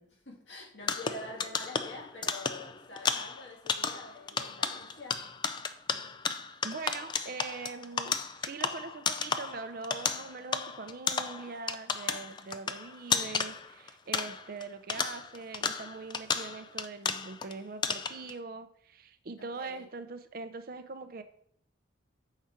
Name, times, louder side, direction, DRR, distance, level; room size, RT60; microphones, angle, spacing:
voice 1, 0.0-5.2 19.4-19.8, left 2 dB, 80° left, -2 dB, 2.1 m, -46 dB
sound 1, 0.8-14.6 14.9-17.5 17.8-18.3, left 6 dB, 25° left, 0.3 m, -33 dB
voice 2, 6.6-8.2 8.4-21.2, right 4 dB, 50° right, 9 dB, 0.5 m, -42 dB
5.7 x 4.4 x 4.9 m, 0.65 s
head